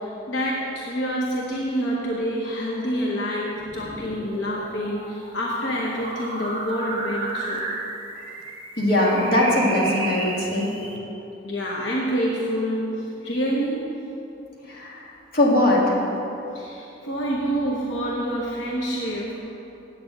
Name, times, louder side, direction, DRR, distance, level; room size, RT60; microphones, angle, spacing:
voice 1, 0.0-7.6 11.4-13.9 16.5-19.4, equal, 80° left, -3 dB, 1.0 m, -27 dB
sound 1, 3.6-11.0, right 2 dB, 30° right, 1.1 m, -33 dB
voice 2, 8.8-10.7 14.7-15.0 15.3-16.0, left 1 dB, 50° left, -4 dB, 2.0 m, -20 dB
8.5 x 6.8 x 7.7 m, 2.9 s
head